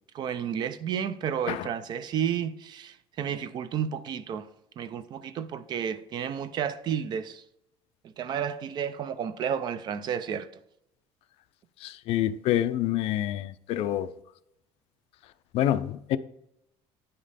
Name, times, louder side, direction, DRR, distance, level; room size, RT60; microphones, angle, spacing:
voice 1, 0.1-4.5 4.8-7.4 8.0-10.5, right 8 dB, 35° right, 0.5 m, -31 dB
voice 2, 11.8-14.1 15.5-16.2, left 12 dB, 55° left, 0.5 m, -27 dB
9.7 x 5.2 x 4.1 m
cardioid pair, 170°, 12 cm